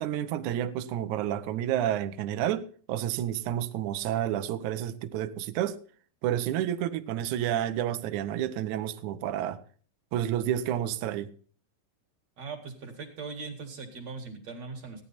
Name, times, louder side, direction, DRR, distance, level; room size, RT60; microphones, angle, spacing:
voice 1, 0.0-5.8 6.2-9.6 10.1-11.3, right 11 dB, 75° right, 1.8 m, -30 dB
voice 2, 12.4-15.0, right 4 dB, 50° right, 2.7 m, -40 dB
15.5 x 9.9 x 4.2 m
omnidirectional pair, 4.3 m